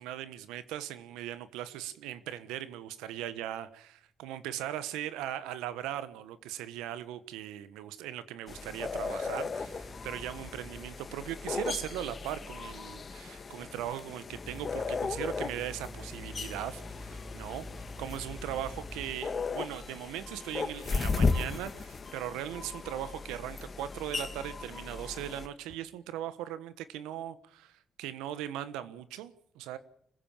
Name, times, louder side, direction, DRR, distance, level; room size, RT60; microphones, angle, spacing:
voice 1, 0.0-17.7 18.0-29.8, right 12 dB, 90° right, 1.2 m, -39 dB
sound 1, 8.5-25.5, left 4 dB, 45° left, 2.2 m, -36 dB
sound 2, 9.5-10.8 11.6-13.6 14.3-19.1 19.7-20.8 21.3-22.6 23.0-23.5 23.9-25.7, left 1 dB, 20° left, 4.0 m, -49 dB
26.0 x 15.5 x 7.3 m
supercardioid pair, 55°, 0 cm